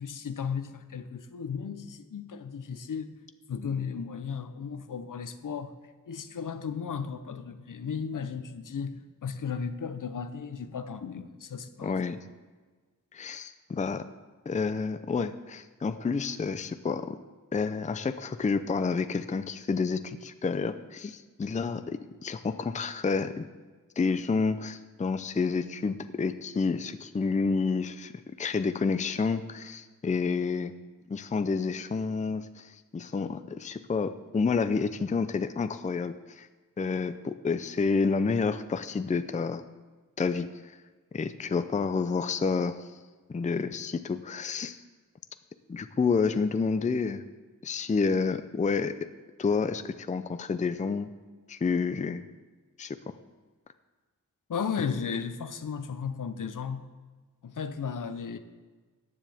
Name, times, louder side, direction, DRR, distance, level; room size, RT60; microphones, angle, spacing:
voice 1, 0.0-3.1 3.5-5.8 6.1-12.0 54.5-56.9 57.4-58.4, left 6 dB, 70° left, 10 dB, 0.7 m, -35 dB
voice 2, 11.8-12.2 13.1-14.0 14.5-17.2 17.5-23.5 24.0-28.1 28.4-30.7 31.1-36.5 36.8-39.6 40.2-40.8 41.1-42.9 43.3-44.8 45.7-47.2 47.6-48.9 49.4-51.1 51.5-52.2 52.8-53.0, left 4 dB, 25° left, 10 dB, 0.4 m, -29 dB
14.0 x 9.9 x 3.5 m, 1.3 s
wide cardioid pair, 105°, 33 cm